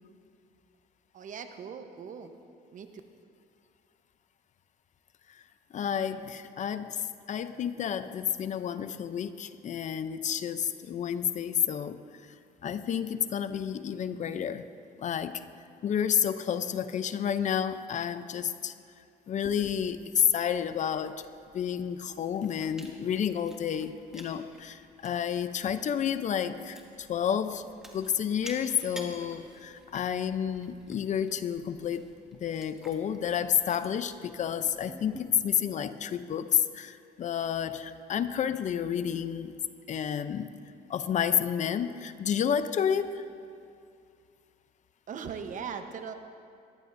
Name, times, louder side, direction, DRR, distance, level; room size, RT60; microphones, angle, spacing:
voice 1, 1.1-2.3 2.7-2.9 45.1-46.1, right 6 dB, 50° right, 7 dB, 1.0 m, -39 dB
voice 2, 5.7-12.0 12.6-14.6 15.0-15.4 15.8-18.7 19.3-21.2 21.5-27.7 27.9-32.1 32.4-39.5 39.9-40.5 40.9-43.3, left 8 dB, 45° left, 12 dB, 0.6 m, -30 dB
Chewing mastication, 19.4-35.2, equal, 5° right, 1.6 m, -52 dB
20.5 x 14.5 x 2.7 m, 2.4 s
cardioid pair, 110°, 17 cm